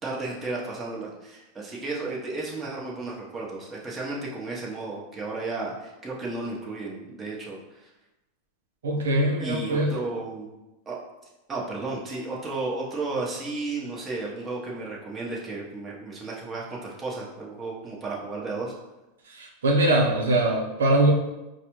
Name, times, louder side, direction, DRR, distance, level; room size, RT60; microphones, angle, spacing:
voice 1, 0.0-7.9 9.4-10.5 10.9-11.0 11.5-18.7, right 3 dB, 20° right, -4 dB, 1.0 m, -33 dB
voice 2, 8.8-9.9 19.3-21.1, right 1 dB, 90° right, -1 dB, 0.7 m, -22 dB
4.7 x 2.2 x 3.1 m, 1.0 s
hypercardioid pair, 110°, 0 cm